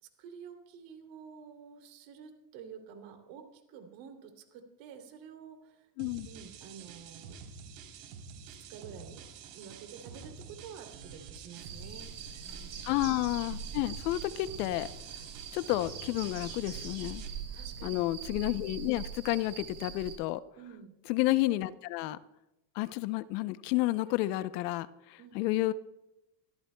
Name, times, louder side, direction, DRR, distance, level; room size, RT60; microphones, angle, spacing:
voice 1, 0.0-5.9 6.3-7.4 8.4-9.2 9.5-12.2 12.4-12.9 17.5-17.9 20.6-20.9 25.2-25.4, right 7 dB, 65° right, 4 dB, 3.0 m, -50 dB
sound 1, 6.0-17.3, right 6 dB, 85° right, 3.6 m, -48 dB
sound 2, 11.5-20.2, right 6 dB, 30° right, 5.9 m, -43 dB
voice 2, 12.8-14.9 15.5-17.2 17.8-20.4 21.1-22.2 22.7-25.7, left 17 dB, 85° left, 14 dB, 0.8 m, -31 dB
24.0 x 14.5 x 2.3 m, 0.95 s
cardioid pair, 145°, 47 cm